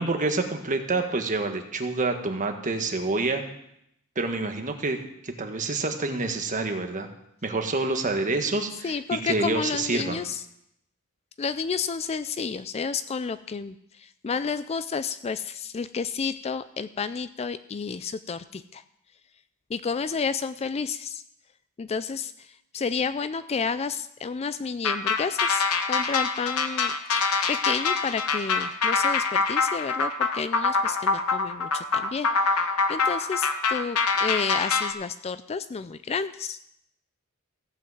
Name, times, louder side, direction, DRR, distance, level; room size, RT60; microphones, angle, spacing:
voice 1, 0.0-3.4 4.1-7.1 7.4-10.2, right 3 dB, 35° right, 5 dB, 1.3 m, -27 dB
voice 2, 8.8-10.4 11.4-18.8 19.7-21.2 21.8-36.6, left 5 dB, 30° left, 13 dB, 0.3 m, -31 dB
sound 1, 24.8-34.9, left 4 dB, 80° left, 1.0 m, -25 dB
15.0 x 5.8 x 7.9 m, 0.77 s
head